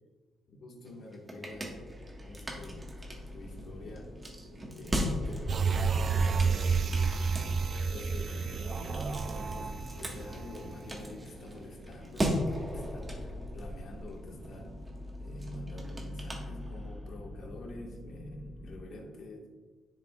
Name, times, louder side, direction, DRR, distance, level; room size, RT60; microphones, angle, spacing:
voice 1, 0.5-1.8 2.2-2.9 3.3-4.3 4.7-7.5 7.9-14.8 15.2-19.5, left 1 dB, 60° left, 1 dB, 1.6 m, -46 dB
sound 1, 0.9-17.1, equal, 20° right, 1.4 m, -39 dB
sound 2, 1.5-18.8, left 1 dB, ahead, 2.4 m, -46 dB
sound 3, 5.5-11.1 11.5-11.6, right 5 dB, 50° right, 0.4 m, -30 dB
10.0 x 6.9 x 2.4 m, 1.4 s
cardioid pair, 90°, 0 cm